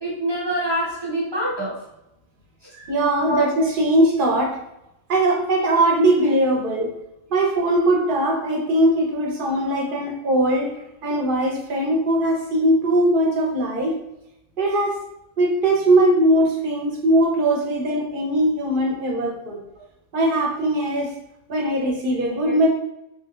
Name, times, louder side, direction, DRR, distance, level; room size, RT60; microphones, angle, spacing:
voice 1, 0.0-1.8 3.2-3.4 22.3-22.6, right 1 dB, 25° right, -7 dB, 0.8 m, -25 dB
voice 2, 2.7-4.6 5.1-6.9 7.3-10.7 11.0-13.9 14.6-15.0 15.4-19.6 20.1-21.1 21.5-22.7, right 1 dB, 55° right, 1 dB, 0.7 m, -20 dB
3.2 x 2.7 x 2.3 m, 0.87 s
omnidirectional pair, 1.2 m